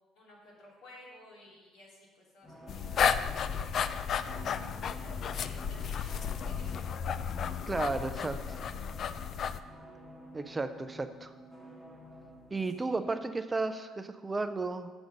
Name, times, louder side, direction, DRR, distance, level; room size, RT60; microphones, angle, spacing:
voice 1, 0.1-3.4 5.0-6.8 12.8-12.9, left 1 dB, 70° left, -3 dB, 2.7 m, -55 dB
sound 1, 2.4-12.7, equal, 10° left, 1.5 m, -51 dB
sound 2, 2.7-9.6, left 7 dB, 50° left, 0.3 m, -33 dB
voice 2, 7.7-8.6 10.3-11.3 12.5-14.9, right 3 dB, 20° right, 10 dB, 0.4 m, -33 dB
7.6 x 6.0 x 5.2 m, 1.3 s
cardioid pair, 100°, 0 cm